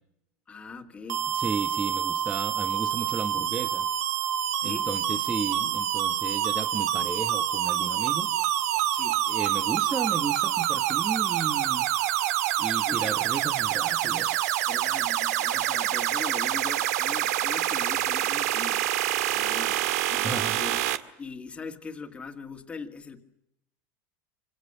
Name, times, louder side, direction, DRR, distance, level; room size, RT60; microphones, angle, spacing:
voice 1, 0.5-1.3 4.6-4.9 8.9-9.2 12.8-13.2 14.7-18.8 19.3-19.8 20.1-20.8 21.2-23.2, left 4 dB, 15° left, 2.1 m, -40 dB
sound 1, 1.1-21.0, right 12 dB, 85° right, 1.9 m, -27 dB
voice 2, 1.3-3.9 4.6-8.3 9.3-11.9 12.6-14.4 20.2-20.6, right 5 dB, 15° right, 1.4 m, -34 dB
27.0 x 27.0 x 6.8 m
supercardioid pair, 165°, 8 cm